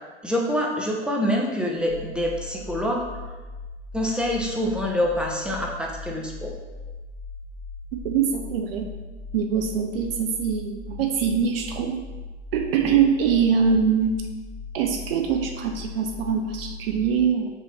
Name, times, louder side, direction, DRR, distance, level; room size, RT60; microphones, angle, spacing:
voice 1, 0.2-3.0 3.9-6.5, equal, 5° right, -1 dB, 0.4 m, -26 dB
sound 1, 1.8-17.1, left 3 dB, 90° right, 0.8 m, -39 dB
voice 2, 7.9-8.9 9.3-12.0 12.5-14.1 14.7-17.5, right 7 dB, 55° right, 4 dB, 0.5 m, -23 dB
5.5 x 2.7 x 3.2 m, 1.2 s
figure-of-eight pair, 85°, 35 cm